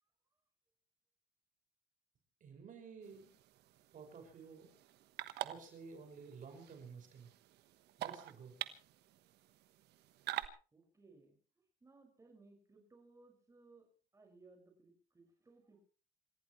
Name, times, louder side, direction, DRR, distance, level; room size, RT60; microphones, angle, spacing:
voice 1, 2.4-3.3 3.9-4.8 5.4-7.3 8.0-8.5, right 5 dB, 50° right, 3 dB, 6.0 m, -52 dB
sound 1, 3.0-10.5, right 14 dB, 80° right, 1.2 m, -47 dB
voice 2, 10.7-11.4 11.8-13.9 14.1-15.8, right 3 dB, 20° right, 2 dB, 5.8 m, -63 dB
27.5 x 15.5 x 3.2 m, 0.36 s
cardioid pair, 110°, 17 cm